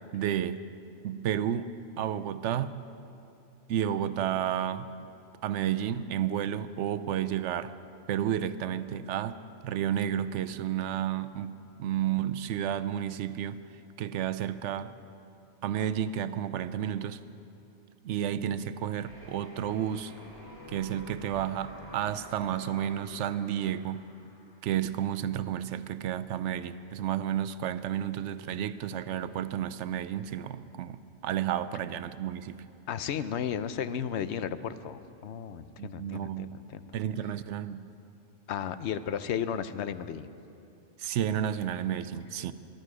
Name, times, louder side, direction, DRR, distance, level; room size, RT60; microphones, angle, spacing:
voice 1, 0.1-0.6 1.0-1.7 2.0-2.7 3.7-4.9 5.4-7.7 8.1-9.4 9.6-13.6 14.0-14.9 15.6-17.2 18.0-20.1 20.7-24.1 24.6-32.6 35.8-36.6 36.9-37.9 41.0-42.5, right 10 dB, 75° right, 14 dB, 0.9 m, -31 dB
sound 1, 19.0-25.0, equal, 20° right, 2.8 m, -49 dB
voice 2, 32.9-36.9 38.5-40.3, left 8 dB, 70° left, 13 dB, 0.9 m, -34 dB
23.0 x 12.0 x 4.9 m, 2.8 s
omnidirectional pair, 1.2 m